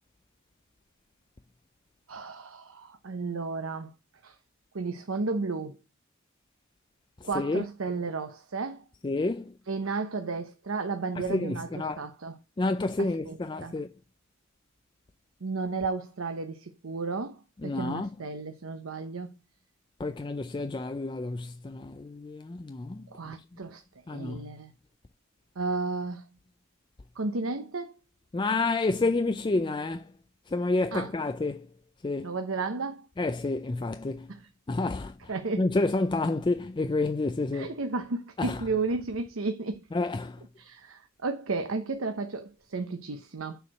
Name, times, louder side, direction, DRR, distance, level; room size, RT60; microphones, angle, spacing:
voice 1, 2.1-3.9 4.2-4.4 4.7-5.8 7.2-8.8 9.7-12.4 13.0-13.7 15.4-19.4 23.1-23.8 24.1-24.7 25.6-26.3 27.2-27.9 30.9-31.1 32.2-33.1 35.3-35.7 37.5-39.8 40.6-43.6, right 3 dB, 75° right, 0.8 m, -33 dB
voice 2, 7.2-7.6 9.0-9.5 11.3-12.0 12.6-13.9 17.6-18.1 20.0-23.3 24.1-24.5 28.3-30.1 30.5-31.7 32.0-32.3 33.2-34.3 34.7-35.1 35.6-37.8 38.4-38.6 39.9-40.4, left 2 dB, 25° left, 0.4 m, -29 dB
6.7 x 4.7 x 6.2 m
head